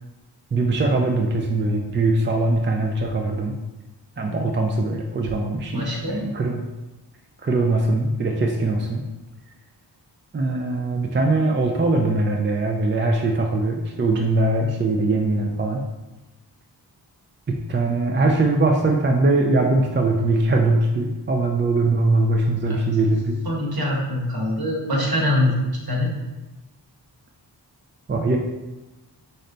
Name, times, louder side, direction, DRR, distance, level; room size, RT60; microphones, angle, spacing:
voice 1, 0.5-3.6 4.2-6.7 7.4-9.0 10.3-15.8 17.5-23.4 28.1-28.4, right 2 dB, 25° right, 2 dB, 0.4 m, -21 dB
voice 2, 5.7-6.3 22.7-22.8 23.4-26.1, left 1 dB, 55° right, -2 dB, 1.3 m, -23 dB
4.2 x 3.3 x 3.9 m, 1.1 s
wide cardioid pair, 75°, 43 cm